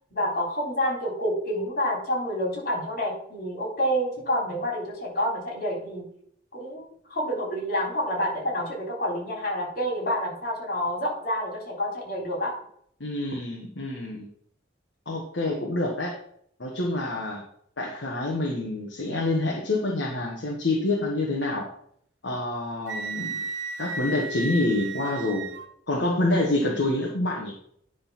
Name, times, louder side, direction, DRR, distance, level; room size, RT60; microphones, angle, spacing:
voice 1, 0.1-6.1 6.5-12.6, equal, 55° left, -2 dB, 3.8 m, -28 dB
voice 2, 13.0-14.3 15.1-16.2 16.6-17.4 17.8-21.7 22.2-23.3 23.8-25.5 25.9-27.5, left 2 dB, 70° left, -1 dB, 1.3 m, -27 dB
Wind instrument woodwind instrument, 22.9-25.7, right 3 dB, 70° right, 0.9 m, -34 dB
9.8 x 3.9 x 5.8 m, 0.66 s
head